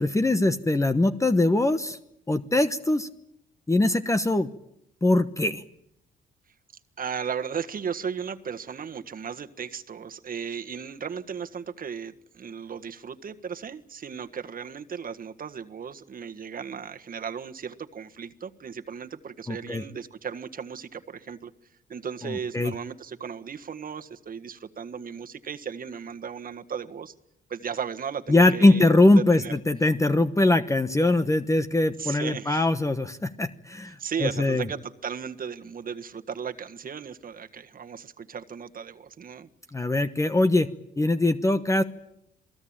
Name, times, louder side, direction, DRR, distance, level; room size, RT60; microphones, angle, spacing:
voice 1, 0.0-2.0 2.3-3.1 3.7-4.5 5.0-5.6 19.5-19.8 22.2-22.7 28.3-34.7 39.7-40.7 41.0-41.8, left 2 dB, 15° left, 10 dB, 1.1 m, -22 dB
voice 2, 7.0-21.5 21.9-27.1 27.5-28.9 29.1-29.5 32.0-32.7 33.8-39.5, right 7 dB, 45° right, 8 dB, 1.6 m, -36 dB
27.5 x 19.0 x 8.9 m, 0.80 s
cardioid pair, 90°, 20 cm